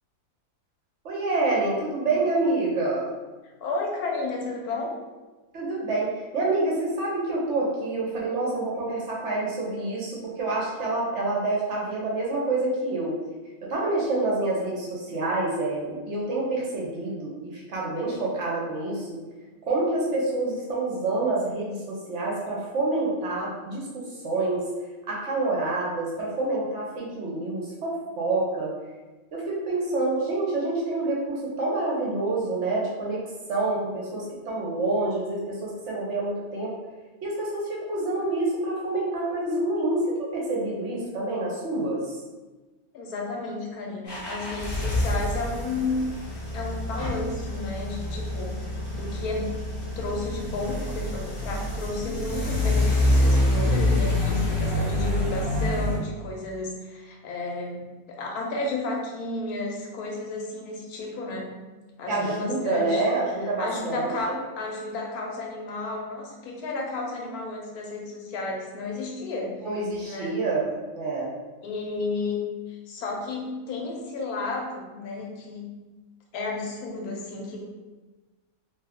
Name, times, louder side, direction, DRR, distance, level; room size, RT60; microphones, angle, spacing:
voice 1, 1.0-3.1 5.5-13.2 13.6-19.2 19.6-24.7 25.1-28.7 29.3-33.2 33.5-36.7 37.2-42.2 62.1-64.1 69.6-70.7 71.0-71.3, right 2 dB, 60° right, -4 dB, 0.9 m, -27 dB
voice 2, 3.6-5.0 42.9-46.1 46.5-49.6 50.0-61.5 62.0-63.0 63.6-69.6 70.0-70.4 71.6-75.7 76.3-77.6, left 2 dB, 90° left, -1 dB, 1.1 m, -32 dB
sound 1, 44.1-56.0, left 1 dB, 25° left, 0.5 m, -26 dB
2.6 x 2.3 x 3.4 m, 1.2 s
omnidirectional pair, 1.5 m